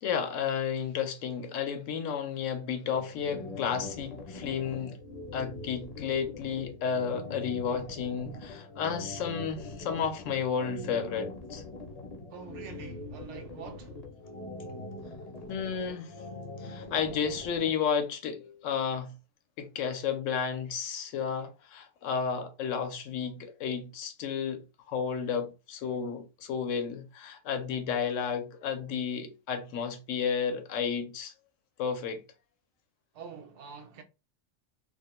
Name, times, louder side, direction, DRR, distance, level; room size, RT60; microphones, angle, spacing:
voice 1, 0.0-5.0 5.3-11.6 15.5-16.1 16.6-19.1 19.6-31.3 31.8-32.2, left 7 dB, 80° left, 0.9 m, -32 dB
sound 1, 3.0-17.7, left 2 dB, 40° left, 0.6 m, -42 dB
voice 2, 12.3-14.0 33.1-34.0, right 6 dB, 70° right, 0.8 m, -45 dB
2.4 x 2.1 x 2.9 m
omnidirectional pair, 1.3 m